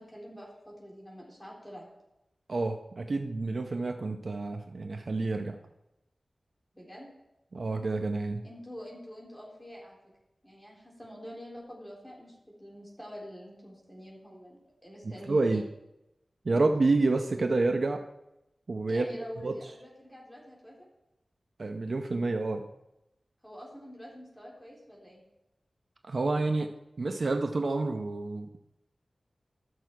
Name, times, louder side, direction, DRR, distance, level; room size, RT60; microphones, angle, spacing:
voice 1, 0.0-1.9 6.7-7.1 8.4-10.0 10.4-15.6 18.9-20.8 23.4-25.2, equal, 10° left, -4 dB, 3.5 m, -46 dB
voice 2, 2.5-5.6 7.5-8.4 15.3-15.6 16.4-18.0 18.7-19.1 19.4-19.5 21.6-22.7 26.1-26.7 27.0-28.6, right 3 dB, 65° right, 5 dB, 0.7 m, -28 dB
13.0 x 6.2 x 4.6 m, 0.89 s
wide cardioid pair, 60°, 0 cm